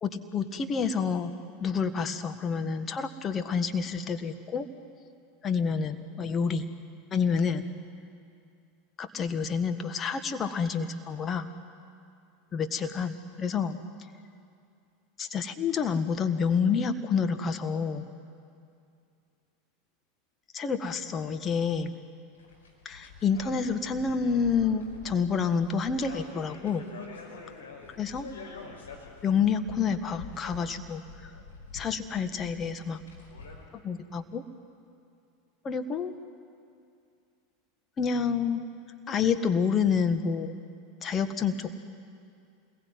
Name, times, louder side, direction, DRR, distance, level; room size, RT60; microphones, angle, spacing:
voice 1, 0.0-4.7 5.4-6.7 7.1-7.6 9.0-11.5 12.5-13.8 15.2-18.1 20.5-21.9 22.9-26.8 28.0-28.3 29.2-31.0 31.7-33.0 33.8-34.4 35.6-36.1 38.0-38.6 39.1-40.6 41.0-41.7, left 6 dB, 25° left, 8 dB, 1.8 m, -28 dB
sound 1, 22.3-33.6, left 4 dB, 75° left, 5.1 m, -47 dB
28.5 x 21.0 x 9.6 m, 2.4 s
figure-of-eight pair, 85°, 0 cm